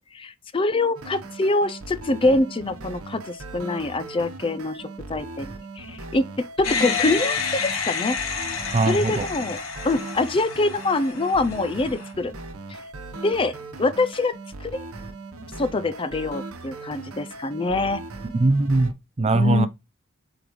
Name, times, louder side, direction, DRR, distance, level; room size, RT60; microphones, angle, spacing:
voice 1, 0.0-5.5 5.8-7.4 7.8-8.2 8.9-9.6 9.8-12.3 12.7-12.8 13.2-14.3 14.6-14.8 15.6-18.0 19.3-19.7, left 2 dB, 25° left, 0.4 m, -24 dB
sound 1, 1.0-18.9, right 2 dB, 90° right, 1.0 m, -39 dB
sound 2, 6.6-12.1, left 5 dB, 70° left, 1.7 m, -29 dB
voice 2, 8.7-9.3 18.3-19.7, right 2 dB, 30° right, 0.5 m, -21 dB
8.1 x 3.9 x 3.1 m
head